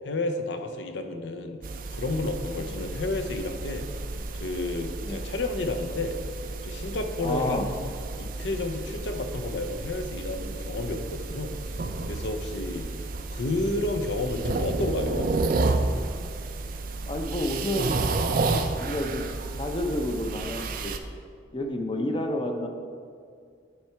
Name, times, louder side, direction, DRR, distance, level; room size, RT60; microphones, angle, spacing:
voice 1, 0.0-1.6 1.9-3.9 4.3-6.2 6.6-7.6 8.2-11.8 12.1-12.9 13.3-15.3, left 2 dB, 65° left, 6 dB, 0.6 m, -31 dB
sound 1, 1.6-21.0, right 3 dB, 45° right, 0.4 m, -31 dB
voice 2, 7.2-7.7 17.1-18.0 18.3-19.2 19.6-20.9 21.5-22.7, left 1 dB, 25° left, 4 dB, 0.6 m, -30 dB
8.6 x 4.7 x 4.4 m, 2.2 s
head